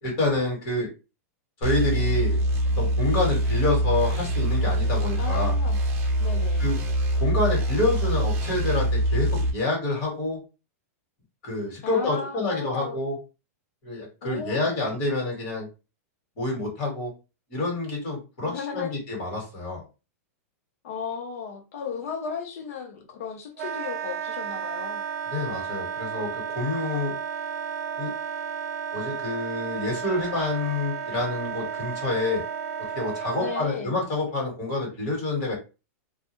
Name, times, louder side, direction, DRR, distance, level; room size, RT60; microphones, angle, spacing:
voice 1, 0.0-0.9 1.6-2.4 2.8-5.6 6.6-6.8 7.2-10.4 11.4-13.2 13.8-15.7 16.4-17.1 17.5-19.8 25.3-27.1 28.0-28.1 28.9-32.4 32.9-35.5, left 2 dB, 40° left, 1.4 m, -27 dB
sound 1, 1.6-9.5, right 1 dB, 25° right, 0.7 m, -24 dB
voice 2, 5.2-5.8 6.2-6.7 11.8-13.0 14.2-14.9 18.5-18.9 20.8-25.0 33.4-33.9, left 6 dB, 65° left, 0.7 m, -35 dB
Wind instrument woodwind instrument, 23.6-33.7, right 7 dB, 80° right, 0.5 m, -33 dB
2.3 x 2.2 x 3.0 m
supercardioid pair, 160°, 8 cm